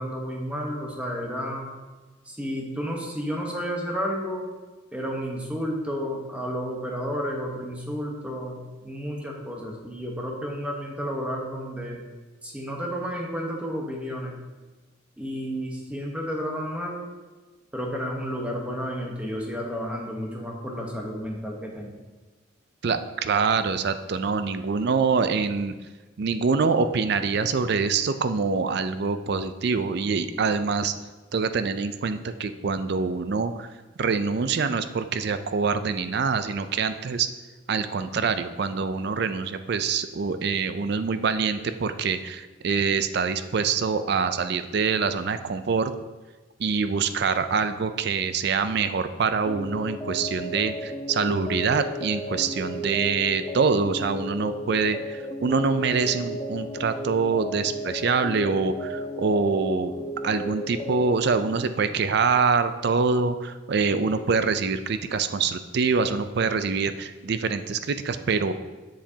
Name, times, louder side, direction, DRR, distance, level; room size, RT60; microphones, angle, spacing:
voice 1, 0.0-1.7 2.3-4.4 4.9-12.0 12.4-14.4 15.2-17.1 17.7-22.0, equal, 5° right, -1 dB, 1.0 m, -31 dB
voice 2, 22.8-25.7 26.2-30.9 31.3-33.7 34.0-37.3 37.7-45.9 46.6-59.9 60.2-68.5, right 5 dB, 55° right, 10 dB, 0.4 m, -25 dB
sound 1, 49.5-61.2, equal, 10° left, 0.5 m, -34 dB
7.3 x 7.2 x 2.8 m, 1.2 s
head